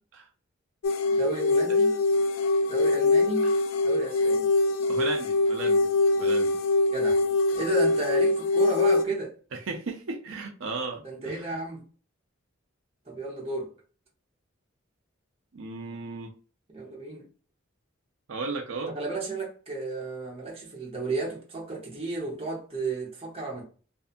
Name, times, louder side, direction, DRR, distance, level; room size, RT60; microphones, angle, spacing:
sound 1, 0.8-9.0, left 2 dB, 75° left, 0.3 m, -23 dB
voice 1, 1.1-1.9 2.7-3.5 3.8-4.5 6.9-7.2 7.5-9.4 11.0-11.8 13.1-13.7 16.7-17.3 18.9-23.6, right 3 dB, 30° right, 0.9 m, -33 dB
voice 2, 4.9-5.9 6.2-6.6 9.5-11.6 15.5-16.3 18.3-18.9, right 3 dB, 75° right, 0.5 m, -35 dB
2.5 x 2.5 x 2.5 m
head